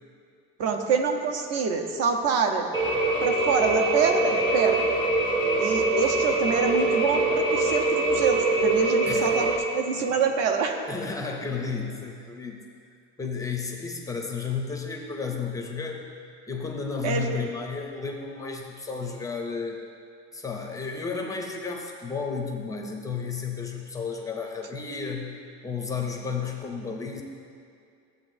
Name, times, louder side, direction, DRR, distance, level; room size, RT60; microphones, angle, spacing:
voice 1, 0.6-2.7 3.2-4.8 5.6-10.8 17.0-17.4, right 5 dB, 55° right, 4 dB, 0.8 m, -26 dB
sound 1, 2.7-9.6, right 2 dB, 15° right, 0.7 m, -24 dB
voice 2, 9.0-9.4 10.9-12.7 13.2-16.1 16.5-19.8 20.3-25.4 25.6-27.2, left 5 dB, 10° left, 1 dB, 0.4 m, -32 dB
13.5 x 7.8 x 2.6 m, 2.4 s
cardioid pair, 175°, 30 cm